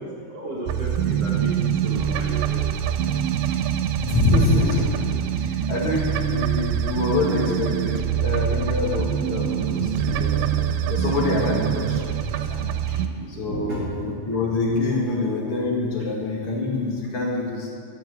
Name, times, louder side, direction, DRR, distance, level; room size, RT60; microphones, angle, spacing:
voice 1, 0.3-2.8 3.4-3.6 8.6-8.7 10.0-10.9 13.1-14.2, right 1 dB, 65° right, -5 dB, 1.5 m, -33 dB
sound 1, 0.7-13.1, right 9 dB, 90° right, 2.9 m, -25 dB
voice 2, 4.0-5.0 5.3-10.4 10.9-12.6 13.3-17.7, left 2 dB, 45° left, -3 dB, 2.0 m, -25 dB
13.0 x 7.6 x 8.0 m, 2.2 s
omnidirectional pair, 5.1 m